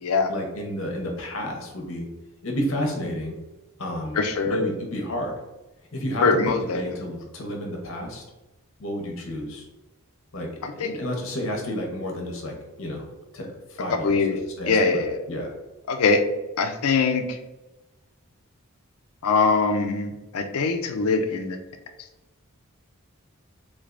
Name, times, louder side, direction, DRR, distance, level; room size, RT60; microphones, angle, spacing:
voice 1, 0.3-2.1 2.4-3.4 3.8-4.2 4.5-5.4 5.9-6.3 6.6-8.2 8.8-9.7 10.3-10.5 10.8-13.0 13.3-14.1 14.6-15.5, left 1 dB, 65° left, 1 dB, 0.9 m, -31 dB
voice 2, 4.1-4.6 6.2-6.8 10.6-10.9 13.9-14.4 14.7-15.2 15.9-16.2 16.6-17.4 19.2-21.6, left 4 dB, 80° left, 6 dB, 0.5 m, -22 dB
3.7 x 3.3 x 2.5 m, 1.1 s
head